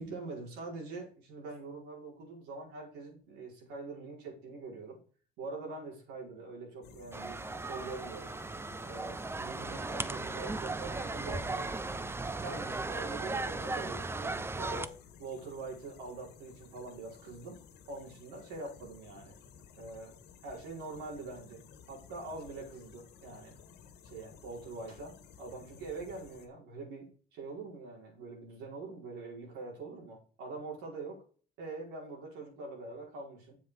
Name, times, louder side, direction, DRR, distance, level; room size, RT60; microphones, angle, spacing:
voice 1, 0.0-5.0 5.4-7.4 7.6-8.3 8.9-12.0 12.4-14.9 15.2-17.6 17.9-19.3 19.8-20.1 20.4-21.6 21.9-23.5 24.0-31.2 31.6-33.6, right 3 dB, 85° right, -1 dB, 5.0 m, -44 dB
sound 1, 6.8-26.5, left 7 dB, 80° left, 1.7 m, -56 dB
sound 2, 7.1-14.9, right 3 dB, 15° right, 0.6 m, -37 dB
7.5 x 7.4 x 5.0 m, 0.41 s
cardioid pair, 110°, 17 cm